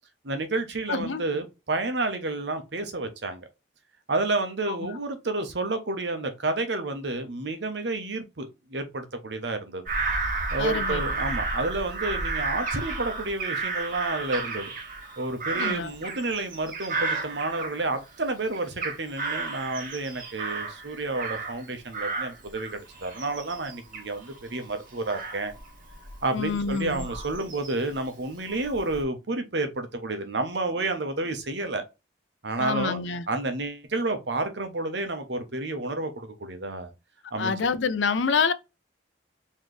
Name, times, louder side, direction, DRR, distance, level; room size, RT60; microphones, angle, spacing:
voice 1, 0.2-3.5 4.1-9.8 10.5-14.7 15.2-25.5 26.2-31.8 32.4-33.0 33.3-36.9 37.3-37.5, right 2 dB, 65° right, 1.0 m, -30 dB
voice 2, 0.9-1.2 4.7-4.8 10.6-11.0 15.5-15.9 26.3-27.1 32.6-33.2 37.4-38.5, left 5 dB, 80° left, 0.5 m, -27 dB
Bird vocalization bird call bird song / Crow, 9.9-18.2 18.5-21.7 21.9-27.9 28.5-29.0, right 3 dB, 45° right, 1.5 m, -33 dB
4.2 x 3.2 x 3.2 m
head